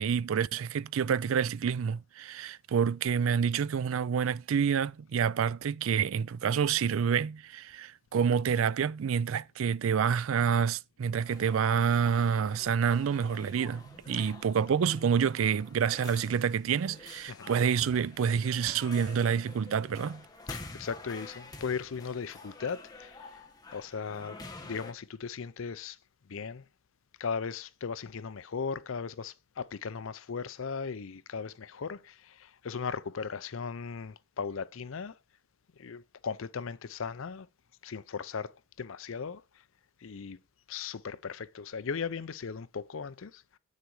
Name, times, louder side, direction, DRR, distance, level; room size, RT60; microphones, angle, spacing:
voice 1, 0.0-20.2, right 7 dB, 70° right, 0.4 m, -28 dB
sound 1, 11.3-24.9, left 3 dB, 20° left, 1.2 m, -48 dB
voice 2, 20.5-23.4 23.7-26.0 26.3-26.7 27.2-35.2 35.8-37.5 37.8-39.6 40.0-40.4 40.7-43.4, left 5 dB, 65° left, 0.5 m, -37 dB
8.2 x 6.6 x 4.7 m
head